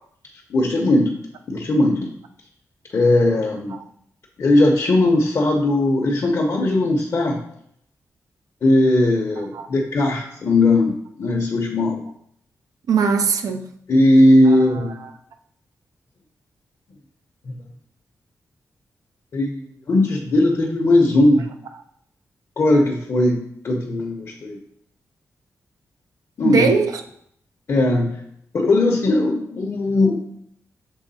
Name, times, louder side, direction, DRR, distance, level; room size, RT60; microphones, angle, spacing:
voice 1, 0.5-1.2 1.5-2.1 2.9-3.8 4.4-7.4 8.6-12.0 13.9-14.9 17.5-17.6 19.3-21.5 22.6-24.6 26.4-26.7 27.7-28.1 28.5-30.2, left 1 dB, 55° left, -1 dB, 0.8 m, -18 dB
voice 2, 12.9-13.7 14.4-15.1 26.4-27.0, right 5 dB, 80° right, 7 dB, 0.6 m, -21 dB
6.4 x 3.5 x 4.1 m, 0.69 s
wide cardioid pair, 105°, 6 cm